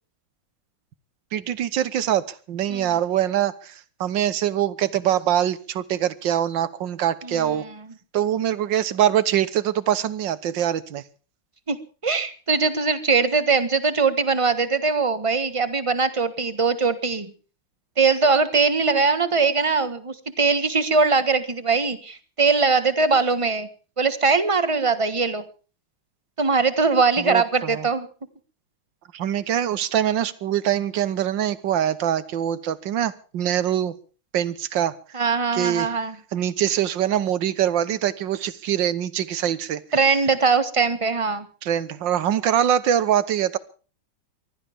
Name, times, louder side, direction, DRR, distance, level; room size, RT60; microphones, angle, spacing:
voice 1, 1.3-7.7 8.1-11.0 27.2-27.9 29.1-34.0 34.3-35.0 35.5-35.9 36.3-39.8 41.6-43.6, right 10 dB, 65° right, 17 dB, 1.7 m, -23 dB
voice 2, 7.2-7.7 11.7-11.8 12.0-17.3 18.0-23.7 24.0-25.4 26.4-28.1 35.1-36.1 39.9-41.5, right 4 dB, 20° right, 12 dB, 1.2 m, -21 dB
23.0 x 15.5 x 3.6 m, 0.37 s
omnidirectional pair, 2.2 m